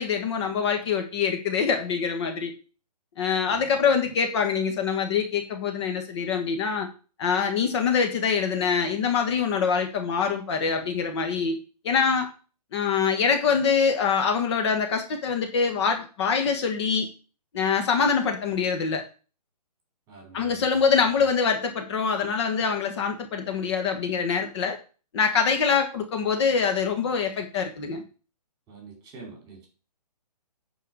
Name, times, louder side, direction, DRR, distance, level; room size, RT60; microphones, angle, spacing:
voice 1, 0.0-2.5 3.2-6.9 7.2-11.6 11.8-12.3 12.7-17.1 17.5-19.0 20.3-24.8 25.1-28.0, left 6 dB, 40° left, 5 dB, 1.7 m, -24 dB
voice 2, 3.5-4.2 20.1-20.9 28.7-29.7, right 4 dB, 20° right, 1 dB, 4.6 m, -47 dB
10.0 x 4.7 x 6.4 m, 0.36 s
hypercardioid pair, 150°, 21 cm